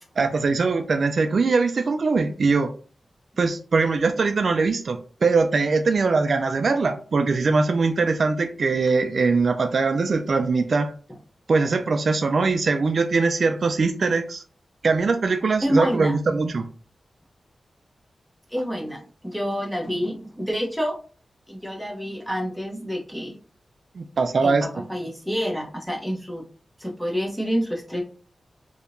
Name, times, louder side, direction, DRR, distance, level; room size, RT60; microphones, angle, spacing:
voice 1, 0.2-2.7 3.4-10.9 11.5-14.4 14.8-16.7 24.0-24.7, right 4 dB, 60° right, 7 dB, 0.3 m, -21 dB
voice 2, 15.6-16.2 18.5-21.0 21.5-23.4 24.4-26.4 26.8-28.0, equal, ahead, -1 dB, 0.8 m, -28 dB
3.5 x 2.8 x 2.5 m, 0.41 s
wide cardioid pair, 100°, 0 cm